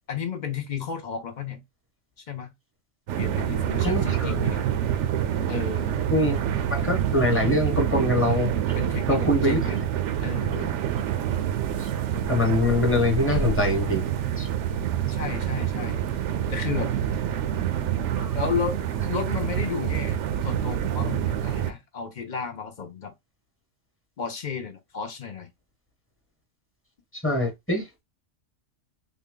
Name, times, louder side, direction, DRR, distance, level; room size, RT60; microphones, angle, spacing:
voice 1, 0.1-1.6 2.3-2.5 3.2-4.6 5.5-5.9 8.7-9.8 10.2-10.7 15.1-16.0 16.5-16.9 18.3-18.8 19.1-20.2 20.4-23.1 24.2-25.5, left 6 dB, 50° left, 0.7 m, -33 dB
sound 1, 3.1-21.7, right 10 dB, 75° right, 0.9 m, -27 dB
voice 2, 3.8-4.4 6.1-8.7 9.1-9.8 10.5-10.7 11.8-11.9 12.3-14.0 14.4-14.5 18.2-18.3 27.2-28.0, left 1 dB, 10° left, 1.0 m, -24 dB
3.6 x 2.1 x 3.7 m
omnidirectional pair, 1.2 m